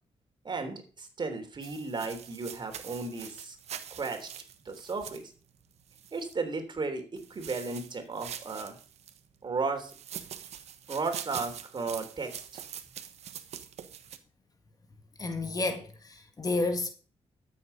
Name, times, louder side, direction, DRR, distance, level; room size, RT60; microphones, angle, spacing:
voice 1, 0.4-3.6 3.9-4.3 4.6-5.2 6.1-8.8 9.4-9.9 10.9-12.4, right 4 dB, 45° right, 3.3 m, -34 dB
sound 1, 1.6-6.3 7.2-9.2 9.8-14.2, right 9 dB, 80° right, 1.2 m, -44 dB
voice 2, 15.2-16.9, left 2 dB, 35° left, 1.7 m, -31 dB
13.0 x 8.0 x 5.6 m
cardioid pair, 80°, 11 cm